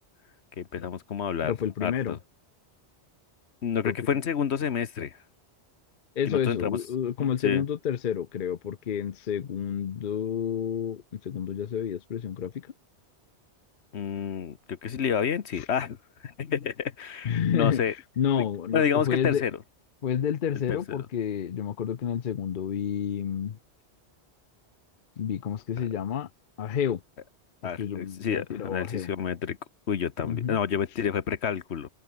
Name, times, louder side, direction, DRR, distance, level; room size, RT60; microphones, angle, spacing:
voice 1, 0.6-2.2 3.6-5.2 6.3-6.8 7.2-7.6 13.9-16.0 16.2-17.9 18.4-18.5 18.7-19.5 20.7-21.1 25.8-25.9 27.6-29.6 29.9-31.9, left 7 dB, 75° left, 1.3 m, -29 dB
voice 2, 1.4-2.2 3.8-4.0 6.2-12.5 17.2-17.8 18.2-19.4 20.0-23.6 25.2-26.3 26.6-27.0 27.8-29.1 30.2-30.6, left 8 dB, 55° left, 0.8 m, -29 dB
omnidirectional pair, 1.1 m